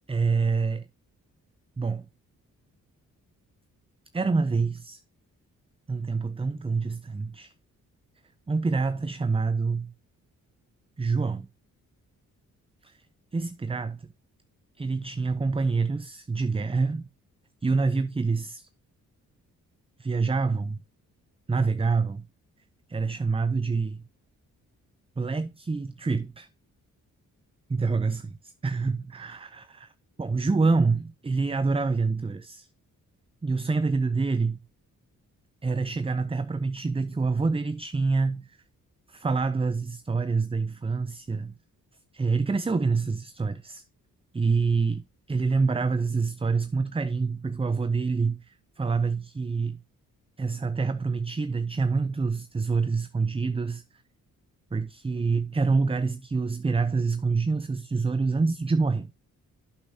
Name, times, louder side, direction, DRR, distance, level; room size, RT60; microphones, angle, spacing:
voice 1, 0.1-0.8 1.8-2.1 4.1-5.0 5.9-7.5 8.5-9.9 11.0-11.5 12.8-13.0 13.3-14.1 14.8-17.1 17.6-18.7 20.0-20.8 21.5-22.3 22.9-24.0 25.2-26.5 27.7-29.9 30.2-32.7 33.4-34.6 35.6-38.6 39.1-41.5 42.1-43.8 44.3-45.0 45.3-49.8 50.4-53.8 54.7-59.1, right 4 dB, 15° right, 0.6 m, -26 dB
8.5 x 8.2 x 2.8 m
supercardioid pair, 55°, 35 cm